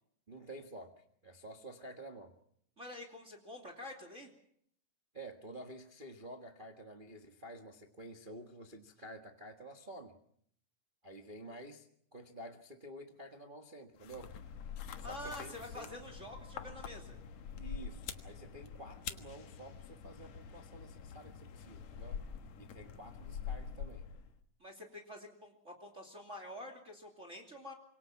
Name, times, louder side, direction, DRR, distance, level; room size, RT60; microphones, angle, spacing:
voice 1, 0.3-2.3 5.1-10.2 11.0-11.9 12.1-14.3 15.0-15.9 17.6-22.2 22.6-24.1, right 1 dB, 55° right, 3 dB, 0.5 m, -50 dB
voice 2, 2.8-4.3 15.0-17.2 24.6-27.7, left 1 dB, 20° right, 3 dB, 2.9 m, -47 dB
sound 1, 14.0-24.4, left 7 dB, 60° left, 2.4 m, -46 dB
26.5 x 23.0 x 6.0 m, 0.67 s
omnidirectional pair, 3.9 m